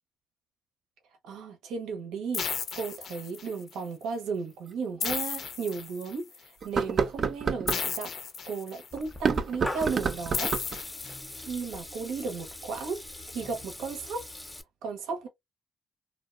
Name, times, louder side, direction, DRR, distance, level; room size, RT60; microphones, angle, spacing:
voice 1, 1.2-6.3 6.6-8.1 8.5-10.5 11.4-13.0 13.3-14.3 14.8-15.3, right 5 dB, 90° right, 0.7 m, -35 dB
sound 1, 2.3-3.7 5.0-6.4 7.7-9.0 10.3-11.7, left 6 dB, 60° left, 0.5 m, -34 dB
sound 2, 4.7-4.8 5.3-5.4 6.6-7.8 9.1-10.8, right 6 dB, 50° right, 0.3 m, -29 dB
Water tap faucet / Liquid, 8.9-14.6, left 1 dB, 10° left, 0.5 m, -42 dB
2.6 x 2.1 x 2.3 m
cardioid pair, 90°, 0 cm